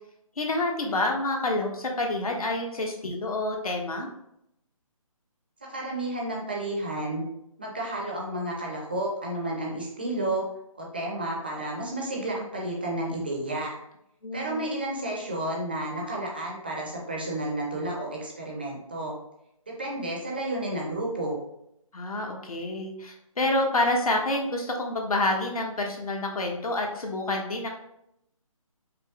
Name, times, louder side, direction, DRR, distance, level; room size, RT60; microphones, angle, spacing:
voice 1, 0.4-4.1 14.2-14.7 21.9-27.7, left 2 dB, 90° left, 1 dB, 1.1 m, -28 dB
voice 2, 5.7-7.2 7.6-10.5 10.8-13.8 14.3-19.2 19.7-21.4, right 1 dB, 15° right, -2 dB, 0.4 m, -31 dB
5.2 x 2.0 x 3.5 m, 0.79 s
hypercardioid pair, 170°, 18 cm